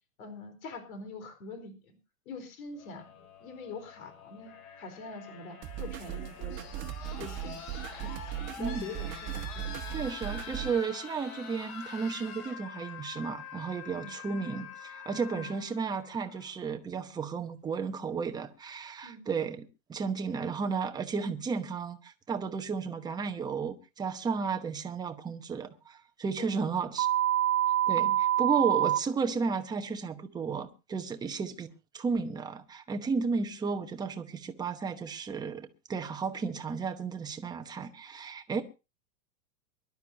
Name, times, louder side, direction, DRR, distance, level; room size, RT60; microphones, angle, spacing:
voice 1, 0.2-1.9 2.3-6.7 7.2-7.6 8.0-8.1 8.6-9.7 13.9-14.1 15.3-15.5 19.0-19.2 26.4-26.6 27.9-28.1 31.1-31.3, left 3 dB, 65° left, 4.5 m, -44 dB
sound 1, 2.7-16.7 17.9-18.0, left 7 dB, 45° left, 6.6 m, -46 dB
sound 2, 5.6-10.7, right 12 dB, 25° right, 1.3 m, -38 dB
voice 2, 8.6-8.9 9.9-27.1 27.9-28.1 28.4-31.7 31.9-38.6, right 5 dB, 10° right, 0.9 m, -33 dB
sound 3, 27.0-29.0, right 12 dB, 70° right, 0.9 m, -25 dB
24.0 x 12.0 x 2.8 m
supercardioid pair, 150°, 45 cm